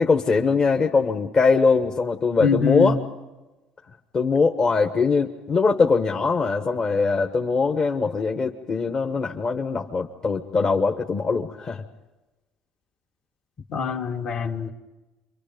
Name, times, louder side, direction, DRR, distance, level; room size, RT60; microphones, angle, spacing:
voice 1, 0.0-3.0 4.1-11.8, left 4 dB, 35° left, 2 dB, 1.4 m, -22 dB
voice 2, 2.4-2.9 13.7-14.7, left 5 dB, 55° left, 2 dB, 2.4 m, -24 dB
27.5 x 24.5 x 5.3 m, 1.1 s
cardioid pair, 105°, 2 cm